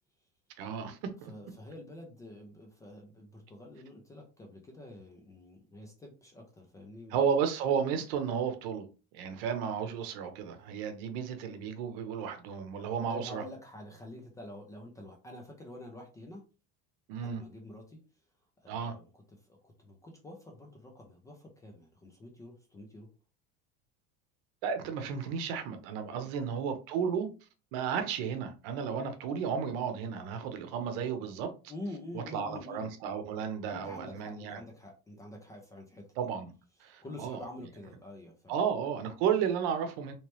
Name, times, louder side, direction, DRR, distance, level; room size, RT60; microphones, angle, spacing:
voice 1, 0.6-1.3 7.1-8.9 9.1-13.4 17.1-17.4 18.7-18.9 24.6-27.3 27.7-31.5 32.1-34.6 36.2-36.5 36.8-37.4 38.5-40.1, right 7 dB, 65° right, 0.8 m, -33 dB
voice 2, 1.3-7.2 13.1-16.4 17.2-18.0 18.6-19.1 19.4-23.1 26.1-26.3 31.7-32.9 33.7-36.1 37.0-38.5, left 1 dB, 10° left, 0.3 m, -47 dB
3.1 x 3.1 x 3.0 m
cardioid pair, 175°, 31 cm